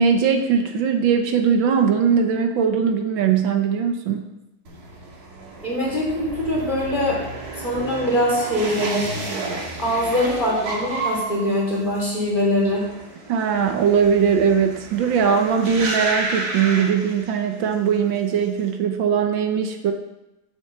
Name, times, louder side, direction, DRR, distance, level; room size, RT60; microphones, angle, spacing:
voice 1, 0.0-4.3 13.3-19.9, right 6 dB, 80° right, 5 dB, 1.6 m, -20 dB
sound 1, 4.6-17.7 18.0-18.6, right 2 dB, 55° right, 2.0 m, -32 dB
voice 2, 5.6-7.2 7.6-9.1 9.8-12.9, left 1 dB, 25° left, -5 dB, 3.3 m, -22 dB
7.8 x 6.1 x 6.8 m, 0.93 s
omnidirectional pair, 2.1 m